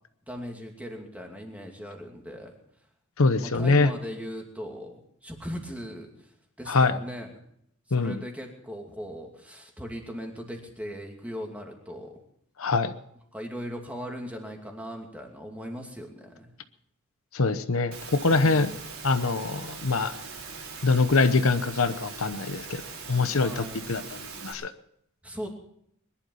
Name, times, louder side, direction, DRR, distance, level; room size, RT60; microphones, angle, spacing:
voice 1, 0.3-2.5 3.4-7.3 7.9-12.2 13.3-16.5 23.4-23.9 25.2-25.5, equal, 5° right, 1 dB, 2.6 m, -39 dB
voice 2, 3.2-3.9 6.7-6.9 7.9-8.2 12.6-12.9 17.3-18.7 19.0-20.1 20.8-22.8 23.1-24.7, left 3 dB, 70° left, 10 dB, 0.9 m, -24 dB
Engine / Mechanisms, 17.9-24.5, right 4 dB, 80° right, 4.2 m, -41 dB
21.5 x 11.5 x 5.5 m, 0.71 s
head